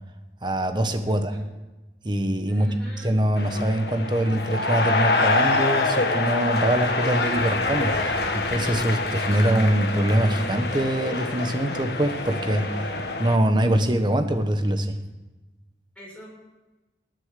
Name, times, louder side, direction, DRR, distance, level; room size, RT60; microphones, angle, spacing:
voice 1, 0.4-1.4 2.0-2.7 3.0-12.8 13.2-15.0, right 1 dB, 25° right, 7 dB, 1.1 m, -23 dB
voice 2, 1.0-1.5 2.5-3.1 15.9-16.3, right 1 dB, 5° left, -5 dB, 6.4 m, -44 dB
sound 1, 3.4-13.4, left 3 dB, 65° left, 1.6 m, -26 dB
20.0 x 8.3 x 6.7 m, 1.1 s
head